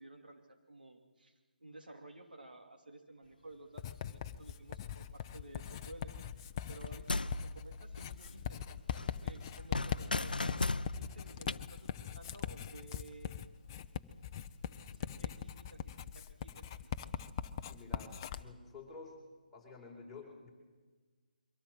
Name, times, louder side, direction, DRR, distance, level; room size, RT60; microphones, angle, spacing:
voice 1, 0.0-10.6 10.9-13.4 14.7-16.8, right 2 dB, 70° right, 4 dB, 3.0 m, -54 dB
Writing, 3.8-18.4, left 9 dB, 25° left, 0.7 m, -42 dB
sound 1, 6.7-8.6 8.9-11.6, left 3 dB, 70° left, 0.6 m, -37 dB
voice 2, 17.7-19.2 19.5-20.5, left 4 dB, 5° left, -5 dB, 4.4 m, -51 dB
23.5 x 17.0 x 7.8 m, 1.4 s
figure-of-eight pair, 145°, 5 cm